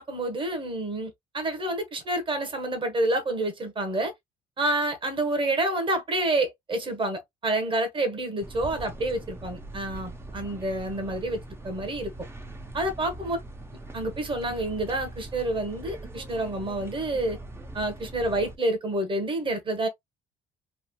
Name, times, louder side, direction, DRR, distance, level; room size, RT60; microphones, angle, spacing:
voice 1, 0.0-4.1 4.6-12.1 12.7-13.4 13.9-17.4 17.7-19.9, right 1 dB, 30° right, 1.2 m, -28 dB
sound 1, 8.4-18.6, right 2 dB, 15° right, 0.7 m, -42 dB
3.2 x 2.4 x 2.3 m
cardioid pair, 110°, 17 cm